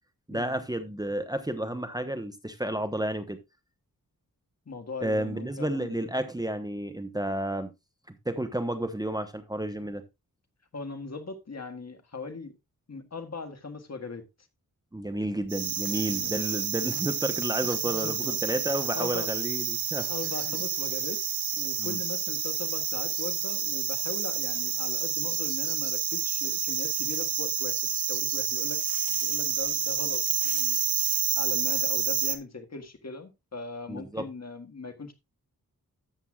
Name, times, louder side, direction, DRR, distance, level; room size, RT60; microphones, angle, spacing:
voice 1, 0.3-3.4 5.0-7.7 8.2-10.0 14.9-20.1 21.8-22.0 33.9-34.2, right 1 dB, 10° right, 1.0 m, -31 dB
voice 2, 4.6-6.0 10.7-12.5 12.9-14.2 15.9-16.4 16.8-16.9 17.6-18.4 18.9-19.3 20.1-21.2 21.6-27.8 28.1-28.8 29.1-30.8 31.3-35.1, left 4 dB, 45° left, 1.7 m, -39 dB
sound 1, 15.5-32.4, right 8 dB, 85° right, 1.1 m, -29 dB
13.0 x 8.0 x 2.4 m
wide cardioid pair, 90°, 35 cm